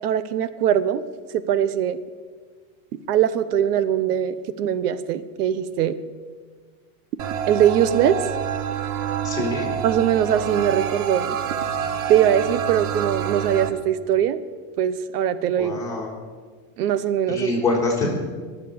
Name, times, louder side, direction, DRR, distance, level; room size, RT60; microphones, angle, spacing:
voice 1, 0.0-1.0 1.3-2.0 3.1-6.0 7.5-8.2 9.8-11.4 12.1-14.4 14.8-15.8 16.8-17.5, right 10 dB, 90° right, 14 dB, 1.0 m, -21 dB
sound 1, 7.2-13.7, right 8 dB, 75° right, 1.3 m, -27 dB
voice 2, 9.2-9.7 15.5-16.1 17.3-18.1, left 3 dB, 5° left, -5 dB, 4.0 m, -24 dB
22.0 x 7.5 x 7.0 m, 1.5 s
supercardioid pair, 155°, 45 cm